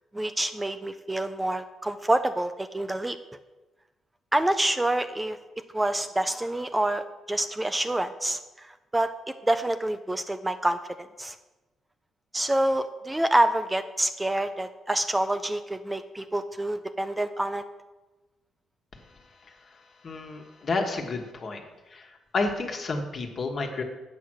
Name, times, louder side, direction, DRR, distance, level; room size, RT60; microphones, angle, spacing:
voice 1, 0.1-3.2 4.3-5.4 5.7-11.4 12.3-17.6, right 1 dB, 10° right, 9 dB, 0.4 m, -27 dB
voice 2, 20.0-21.6 21.9-23.8, left 3 dB, 45° left, 3 dB, 1.4 m, -30 dB
8.4 x 6.2 x 6.2 m, 1.1 s
cardioid pair, 90°, 0 cm